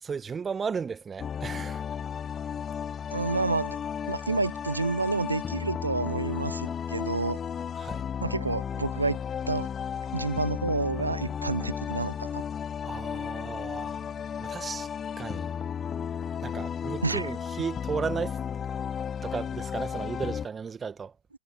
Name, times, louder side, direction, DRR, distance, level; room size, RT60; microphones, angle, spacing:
voice 1, 0.0-1.8 7.7-8.1 12.8-14.0 14.4-15.5 16.4-18.4 19.2-21.1, right 6 dB, 15° right, 1.5 m, -35 dB
sound 1, 1.2-20.5, left 7 dB, 20° left, 0.7 m, -34 dB
voice 2, 3.1-3.8 4.1-7.4 8.2-9.2 9.5-9.7 10.1-12.4 17.0-17.3, right 3 dB, 80° right, 0.6 m, -29 dB
figure-of-eight pair, 90°, 0 cm